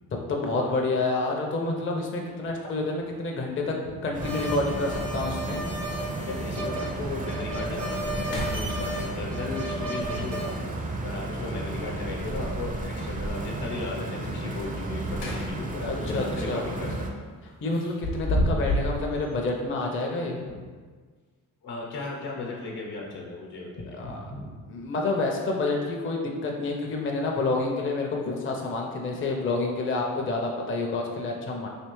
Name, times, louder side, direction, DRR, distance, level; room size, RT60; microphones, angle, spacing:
voice 1, 0.3-3.8 4.0-5.6 15.8-16.7 17.6-20.4 23.9-24.3 24.7-31.7, left 2 dB, 30° left, 0 dB, 0.6 m, -28 dB
sound 1, 2.4-2.5 4.3-4.4 4.8-4.9 5.1-5.7 6.2-6.3 6.9-7.0 7.4-7.7 8.2-9.3 11.4-12.0 14.8-15.8 16.2-16.4 17.7-19.0, equal, 90° left, 0.6 m, -31 dB
sound 2, 4.1-17.1, right 2 dB, 20° right, 0.5 m, -33 dB
sound 3, 4.2-10.6, right 1 dB, 80° right, 0.7 m, -35 dB
voice 2, 6.2-10.5 11.0-17.6 18.6-18.7 20.5-20.6 21.6-24.5, left 3 dB, 65° left, -1 dB, 0.9 m, -36 dB
3.3 x 2.9 x 3.0 m, 1.5 s
hypercardioid pair, 45°, 41 cm